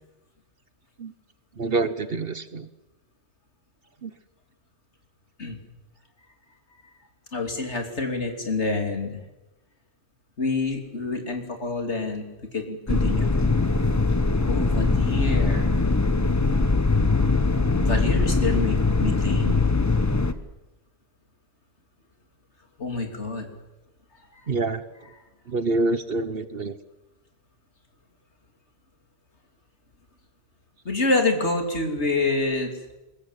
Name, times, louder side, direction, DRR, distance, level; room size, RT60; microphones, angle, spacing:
voice 1, 1.6-2.7 4.0-4.1 24.5-24.8 25.5-26.7, right 3 dB, 60° right, 12 dB, 1.3 m, -26 dB
voice 2, 7.3-9.2 10.4-12.2 12.5-13.5 14.5-15.7 17.8-19.5 22.8-23.5 30.8-33.0, left 3 dB, 85° left, 4 dB, 3.4 m, -27 dB
sound 1, 12.9-20.3, left 3 dB, 15° left, 1.0 m, -21 dB
23.0 x 21.0 x 8.1 m, 1.0 s
omnidirectional pair, 1.1 m